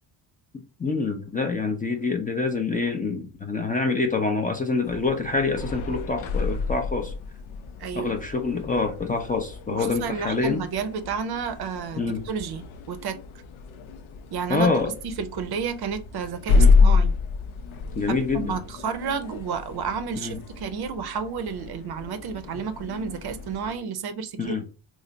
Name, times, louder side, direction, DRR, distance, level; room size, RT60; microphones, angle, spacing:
voice 1, 0.8-7.1 7.9-10.6 12.0-12.2 14.5-14.9 16.6-16.7 18.0-18.6 20.2-20.4 24.4-24.7, left 4 dB, 20° left, 0.4 m, -26 dB
sound 1, 4.8-23.8, left 4 dB, 85° left, 0.6 m, -28 dB
voice 2, 7.8-8.1 9.7-12.0 12.3-13.2 14.3-17.1 18.1-24.4, right 6 dB, 55° right, 0.5 m, -31 dB
3.2 x 2.0 x 3.7 m
cardioid pair, 105°, 46 cm